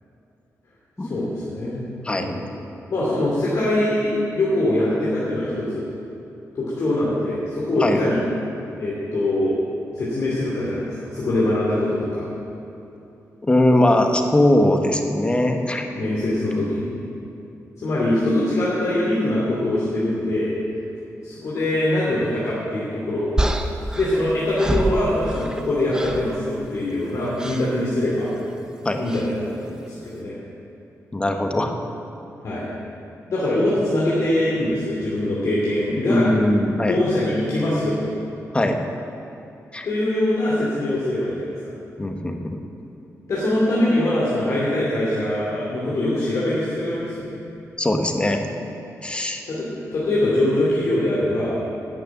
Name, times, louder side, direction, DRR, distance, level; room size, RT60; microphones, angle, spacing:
voice 1, 1.0-2.4 2.9-5.8 6.5-8.2 8.8-9.6 10.0-12.3 15.9-16.9 17.8-20.5 21.2-23.4 23.9-28.3 29.0-30.3 32.4-32.7 33.3-36.3 36.9-38.1 39.8-41.7 43.3-47.3 49.5-51.6, left 1 dB, 65° left, -7 dB, 2.7 m, -23 dB
voice 2, 13.4-15.9 28.8-29.0 31.1-31.7 36.1-37.0 38.5-38.8 39.7-39.9 42.0-42.6 47.8-48.5 49.0-49.4, left 1 dB, 20° left, 5 dB, 1.1 m, -20 dB
sound 1, 23.4-25.7 25.9-26.3 27.4-27.7 29.1-29.3, right 1 dB, 10° right, 0.8 m, -26 dB
12.0 x 6.6 x 9.0 m, 2.9 s
cardioid pair, 105°, 6 cm